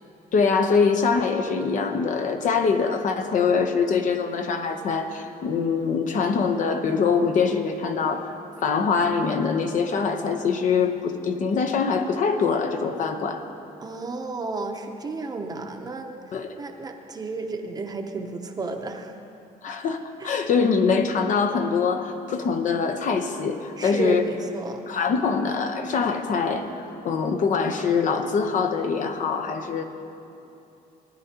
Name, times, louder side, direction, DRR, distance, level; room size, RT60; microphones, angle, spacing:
voice 1, 0.3-8.3 8.6-13.4 16.3-16.5 19.6-24.2 24.9-29.8, left 5 dB, 55° left, 6 dB, 0.8 m, -23 dB
voice 2, 13.8-16.2 16.6-19.1 20.2-20.3 23.8-24.8, right 3 dB, 25° right, 4 dB, 0.7 m, -32 dB
19.0 x 10.5 x 2.9 m, 2.8 s
cardioid pair, 145°, 16 cm